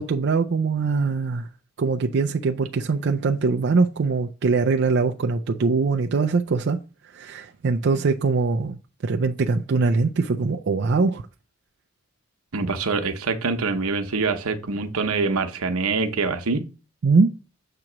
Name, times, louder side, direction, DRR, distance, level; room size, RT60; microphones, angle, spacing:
voice 1, 0.0-1.5 1.8-6.8 7.1-11.2 17.0-17.3, right 4 dB, 50° right, 0.4 m, -22 dB
voice 2, 12.5-16.6, right 4 dB, 80° right, 0.9 m, -25 dB
7.7 x 2.9 x 6.0 m
head